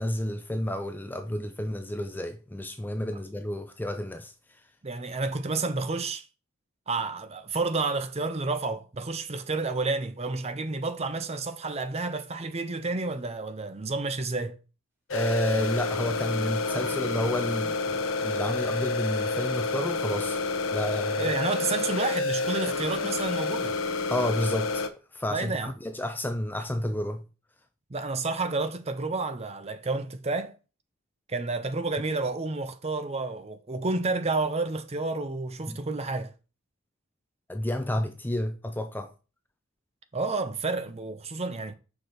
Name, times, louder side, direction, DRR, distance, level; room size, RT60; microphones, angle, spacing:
voice 1, 0.0-4.3 15.1-20.4 20.7-21.3 24.1-24.8 25.1-27.2 35.7-35.8 37.5-39.1, left 1 dB, 10° left, 0.4 m, -30 dB
voice 2, 4.8-6.2 6.9-14.6 21.2-23.8 25.3-25.7 27.9-30.6 31.3-36.3 40.1-41.7, right 3 dB, 30° right, 0.6 m, -30 dB
sound 1, 15.1-24.9, left 3 dB, 65° left, 0.8 m, -29 dB
sound 2, 16.6-18.8, equal, 10° right, 2.1 m, -49 dB
6.0 x 4.9 x 4.0 m
head